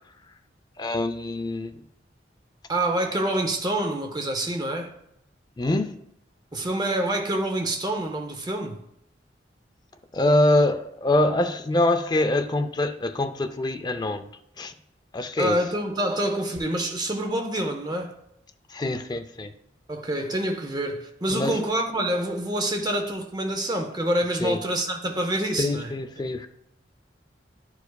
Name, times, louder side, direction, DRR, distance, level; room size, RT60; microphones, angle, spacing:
voice 1, 0.8-1.8 5.6-6.0 10.1-14.3 14.6-14.7 15.1-15.6 18.7-19.5 21.3-21.6 24.4-24.6 25.6-26.5, left 1 dB, 25° left, 0.4 m, -24 dB
voice 2, 2.7-4.9 6.5-8.8 15.4-18.1 19.9-25.9, right 1 dB, 25° right, 0.6 m, -27 dB
10.5 x 4.7 x 2.3 m
head